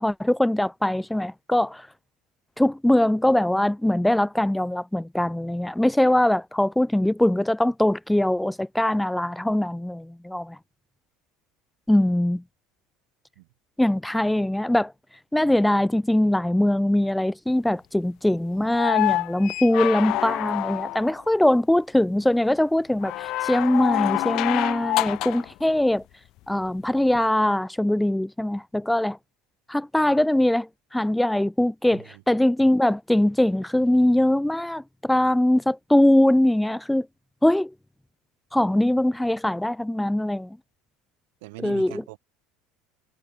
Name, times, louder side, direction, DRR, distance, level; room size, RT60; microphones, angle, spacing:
voice 1, 0.0-1.9 2.6-10.6 11.9-12.4 13.8-14.9 15.3-26.0 26.5-29.2 29.7-37.1 37.4-37.7 38.5-40.5 41.6-41.9, left 1 dB, 5° left, 1.0 m, -22 dB
sound 1, 18.7-21.2 23.0-25.5 27.1-27.2, left 17 dB, 55° left, 0.4 m, -27 dB
voice 2, 31.9-32.2 41.4-42.2, right 25 dB, 85° right, 6.8 m, -41 dB
cardioid pair, 130°, 0 cm